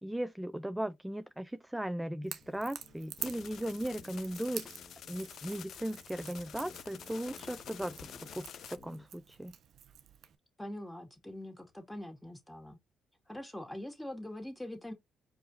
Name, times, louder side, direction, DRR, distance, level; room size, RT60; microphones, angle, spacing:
voice 1, 0.0-4.7 5.1-8.0 8.3-9.6, right 1 dB, 10° right, 0.4 m, -37 dB
Crackle / Crack, 2.2-10.4, right 9 dB, 65° right, 0.6 m, -48 dB
sound 1, 2.4-8.4 8.8-9.1, left 3 dB, 40° left, 1.6 m, -58 dB
sound 2, 3.2-8.8, left 9 dB, 65° left, 0.4 m, -49 dB
voice 2, 10.6-12.8 13.3-14.9, left 1 dB, 10° left, 1.9 m, -43 dB
4.8 x 2.7 x 3.8 m
supercardioid pair, 55°, 0 cm